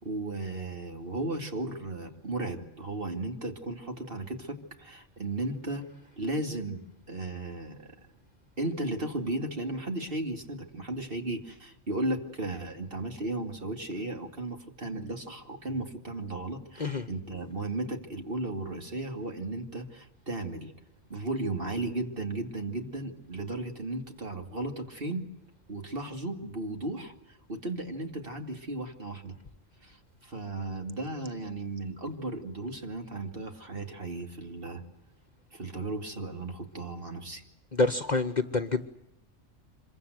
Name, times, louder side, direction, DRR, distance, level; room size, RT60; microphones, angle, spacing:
voice 1, 0.0-5.9 6.2-6.8 7.1-8.1 8.6-20.7 21.1-25.3 25.7-29.4 29.8-34.8 35.5-37.4, right 2 dB, 45° right, 2.8 m, -35 dB
voice 2, 37.7-38.9, left 3 dB, 35° left, 1.1 m, -27 dB
26.5 x 23.0 x 8.0 m
omnidirectional pair, 1.3 m